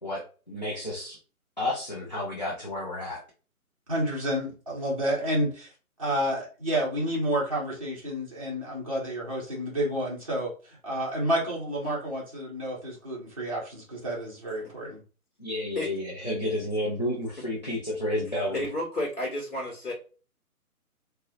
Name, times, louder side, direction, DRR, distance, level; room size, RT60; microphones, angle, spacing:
voice 1, 0.0-1.2 1.6-3.2 15.4-18.7, left 1 dB, 30° left, -6 dB, 0.4 m, -31 dB
voice 2, 3.9-5.7 6.0-15.0, equal, 25° right, -6 dB, 0.5 m, -30 dB
voice 3, 18.5-19.9, left 1 dB, 55° left, -2 dB, 1.1 m, -31 dB
2.6 x 2.0 x 2.4 m, 0.36 s
figure-of-eight pair, 140°, 44 cm